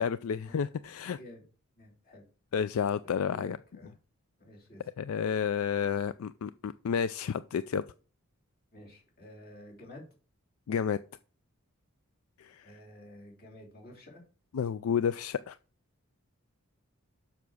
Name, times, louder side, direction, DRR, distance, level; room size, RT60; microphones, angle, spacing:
voice 1, 0.0-1.2 2.5-3.6 5.0-7.8 10.7-11.0 12.4-12.7 14.5-15.6, left 7 dB, 75° left, 0.4 m, -31 dB
voice 2, 1.0-1.4 1.8-2.3 3.3-3.9 4.4-4.8 8.7-10.0 12.6-14.2, left 1 dB, 45° left, 3.0 m, -51 dB
7.1 x 5.9 x 6.3 m
head